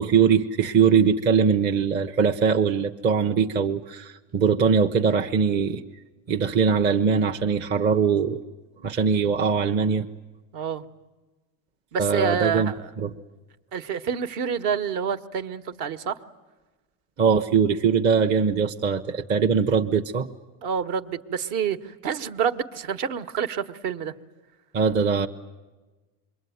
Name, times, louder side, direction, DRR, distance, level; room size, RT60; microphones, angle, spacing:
voice 1, 0.0-5.8 6.3-8.4 8.8-10.1 12.0-13.1 17.2-20.3 24.7-25.3, right 6 dB, 30° right, 3 dB, 0.8 m, -21 dB
voice 2, 10.5-10.8 11.9-12.9 13.7-16.2 20.6-24.1, right 7 dB, 55° right, 10 dB, 1.4 m, -28 dB
27.5 x 22.5 x 9.4 m, 1.2 s
cardioid pair, 155°, 38 cm